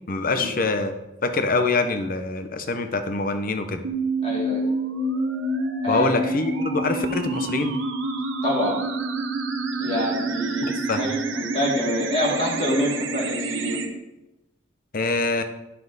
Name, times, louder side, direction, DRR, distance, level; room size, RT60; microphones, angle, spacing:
voice 1, 0.1-1.0 1.2-3.8 5.9-7.8 10.6-11.0 14.9-15.4, left 3 dB, 50° left, 8 dB, 0.7 m, -25 dB
sound 1, 3.8-13.9, right 2 dB, 85° right, 0.9 m, -27 dB
voice 2, 4.2-4.6 5.8-6.1 8.4-8.8 9.8-13.8, equal, 30° left, -3 dB, 1.9 m, -26 dB
9.5 x 5.7 x 4.0 m, 0.95 s
head